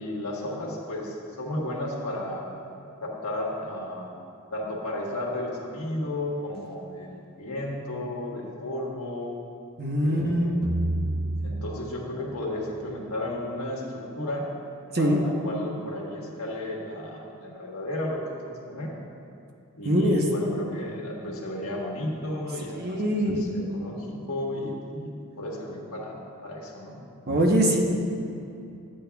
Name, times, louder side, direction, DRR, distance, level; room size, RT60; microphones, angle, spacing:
voice 1, 0.0-2.5 3.0-4.1 4.5-9.4 10.0-10.9 11.4-14.5 15.0-18.9 19.8-27.0, left 1 dB, 75° left, -2 dB, 1.4 m, -33 dB
voice 2, 9.8-10.5 14.9-15.2 19.8-20.2 22.8-23.4 27.3-27.8, equal, 45° right, 0 dB, 0.9 m, -22 dB
sound 1, 10.6-12.8, right 2 dB, 80° right, 0.7 m, -31 dB
12.5 x 8.8 x 2.3 m, 2.6 s
head